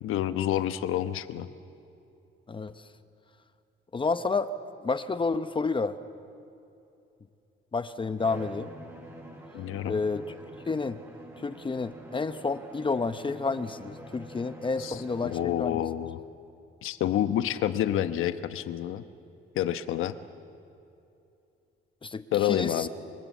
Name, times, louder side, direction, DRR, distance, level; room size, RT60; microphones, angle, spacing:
voice 1, 0.0-1.5 9.5-10.0 14.8-16.2 16.8-19.0 19.5-20.1 22.3-22.9, left 11 dB, 85° left, 11 dB, 1.1 m, -28 dB
voice 2, 3.9-4.5 4.8-6.0 7.7-8.7 9.9-10.2 10.7-11.0 11.4-15.8 22.0-22.9, left 4 dB, 25° left, 11 dB, 0.8 m, -30 dB
Bowed string instrument, 8.2-15.6, right 1 dB, 10° right, 6.7 m, -46 dB
28.0 x 20.0 x 8.3 m, 2.7 s
cardioid pair, 110°, 21 cm